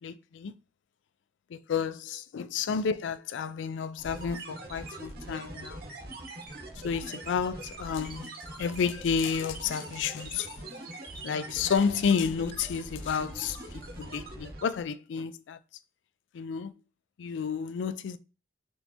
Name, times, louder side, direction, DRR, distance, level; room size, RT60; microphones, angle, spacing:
voice 1, 0.0-0.5 1.5-5.8 6.8-10.5 11.2-15.6 16.3-16.7 17.2-18.2, left 6 dB, 80° left, 0.3 m, -31 dB
sound 1, 4.0-14.9, right 2 dB, 55° right, 1.0 m, -42 dB
4.3 x 3.3 x 2.8 m
head